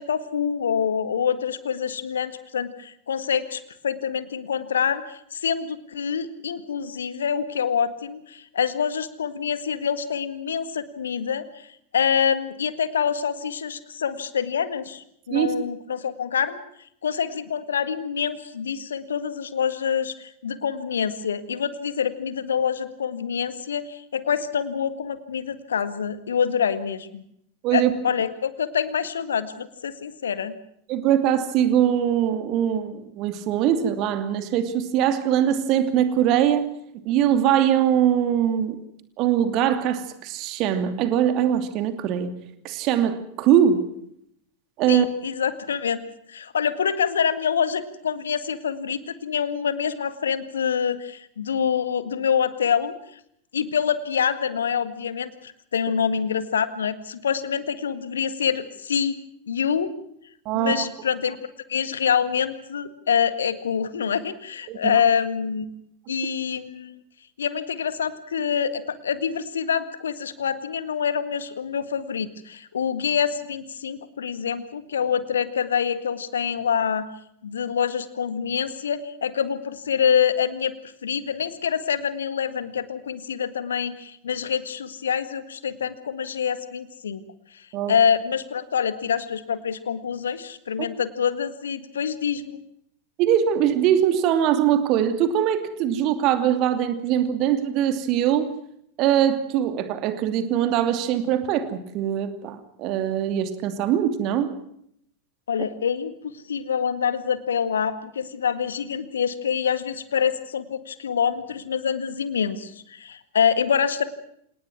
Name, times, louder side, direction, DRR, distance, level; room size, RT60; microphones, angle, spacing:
voice 1, 0.0-11.7 11.9-16.6 17.0-27.2 27.7-30.5 44.9-53.0 53.5-59.1 59.5-59.9 60.5-61.4 61.7-65.7 66.1-67.0 67.4-77.1 77.4-80.7 81.0-87.2 87.5-87.6 87.9-92.6 105.5-114.0, left 7 dB, 65° left, 13 dB, 1.8 m, -26 dB
voice 2, 30.9-36.7 37.0-38.8 39.2-42.3 42.6-43.8 44.8-45.1 60.4-60.8 64.7-65.0 87.7-87.9 93.2-98.5 99.0-104.5, right 10 dB, 40° right, 9 dB, 2.7 m, -22 dB
27.5 x 19.0 x 6.1 m, 0.70 s
figure-of-eight pair, 90°, 0 cm